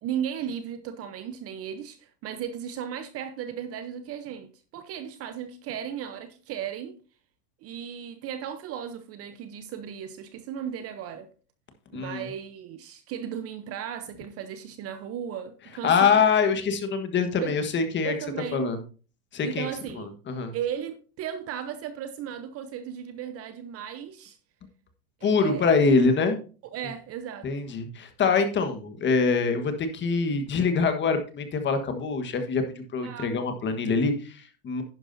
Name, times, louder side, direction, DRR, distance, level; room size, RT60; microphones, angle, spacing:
voice 1, 0.0-7.0 7.6-11.3 11.9-16.2 17.4-17.6 18.0-18.7 19.4-20.1 20.5-24.4 25.2-26.0 26.7-27.5 33.0-33.4, right 9 dB, 30° right, 0.8 m, -36 dB
voice 2, 11.9-12.2 15.8-18.1 18.5-18.8 19.3-19.7 20.0-20.5 25.2-26.4 27.4-32.6 32.9-34.8, left 5 dB, 25° left, 1.4 m, -24 dB
11.0 x 9.8 x 2.7 m
supercardioid pair, 125°, 46 cm